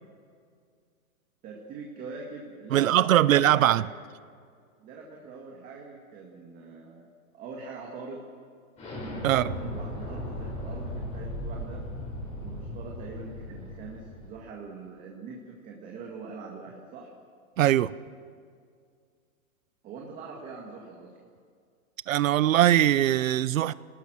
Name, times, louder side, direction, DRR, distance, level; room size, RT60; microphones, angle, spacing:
voice 1, 1.4-3.9 4.8-8.2 9.2-11.8 12.4-17.1 19.8-21.1, right 4 dB, 20° right, -1 dB, 2.0 m, -42 dB
voice 2, 2.7-3.9 9.2-9.4 17.6-17.9 22.1-23.7, right 12 dB, 70° right, 18 dB, 0.7 m, -21 dB
Explosion, 8.8-14.3, left 1 dB, 15° left, 4.3 m, -37 dB
28.0 x 19.0 x 6.2 m, 2.1 s
hypercardioid pair, 165°, 42 cm